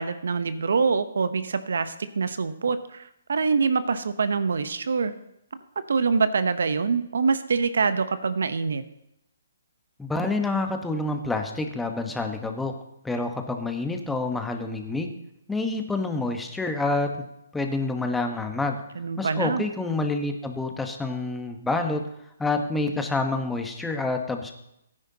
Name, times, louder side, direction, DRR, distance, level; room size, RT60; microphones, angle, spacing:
voice 1, 0.0-5.1 5.9-8.8 19.0-19.6, right 5 dB, 75° right, 12 dB, 0.9 m, -25 dB
voice 2, 10.0-12.7 13.0-15.1 15.5-17.1 17.5-18.8 19.2-22.0 22.4-24.5, left 3 dB, 5° left, 4 dB, 1.1 m, -27 dB
16.5 x 9.9 x 2.9 m, 0.79 s
hypercardioid pair, 145°, 0 cm